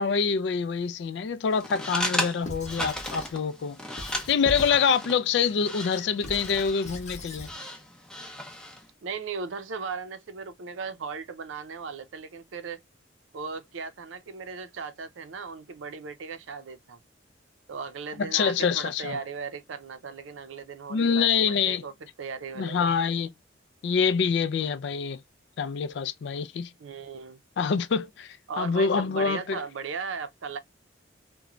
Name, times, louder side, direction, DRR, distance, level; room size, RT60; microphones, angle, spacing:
voice 1, 0.0-7.5 18.2-19.2 20.9-21.8 22.6-23.3 23.8-25.2 25.6-26.7 27.6-29.6, left 6 dB, 60° left, 0.3 m, -26 dB
sound 1, 1.5-8.9, left 1 dB, 5° left, 0.5 m, -36 dB
Squeak / Writing, 2.4-3.4 4.0-4.9 5.3-7.5, left 1 dB, 35° left, 0.7 m, -40 dB
voice 2, 9.0-12.8 13.3-17.0 17.7-21.9 22.2-23.0 26.8-27.4 28.5-30.6, right 5 dB, 80° right, 0.5 m, -37 dB
3.0 x 2.2 x 2.3 m
head